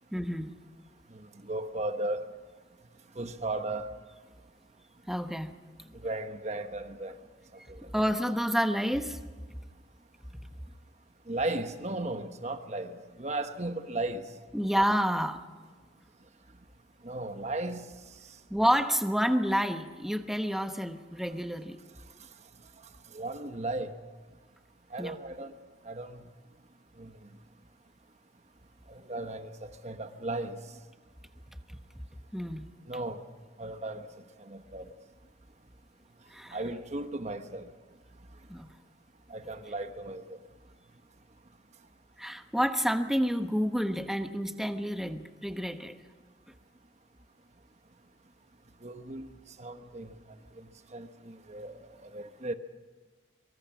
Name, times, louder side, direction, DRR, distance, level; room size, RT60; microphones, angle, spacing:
voice 1, 0.1-0.5 5.1-5.5 7.9-9.2 14.5-15.4 18.5-21.8 25.0-25.2 32.3-32.7 36.3-36.6 38.5-38.7 42.2-46.0, equal, ahead, 1.1 m, -29 dB
voice 2, 1.1-2.3 3.2-3.9 6.0-7.2 11.3-14.3 17.0-17.8 23.1-23.9 24.9-25.5 25.8-26.2 27.0-27.2 28.9-30.6 32.9-33.2 33.6-34.1 34.5-34.9 36.5-37.7 39.3-40.4 48.8-49.3 49.6-50.1 50.9-51.8 52.1-52.5, right 2 dB, 35° right, 1.1 m, -35 dB
24.5 x 23.0 x 6.1 m
head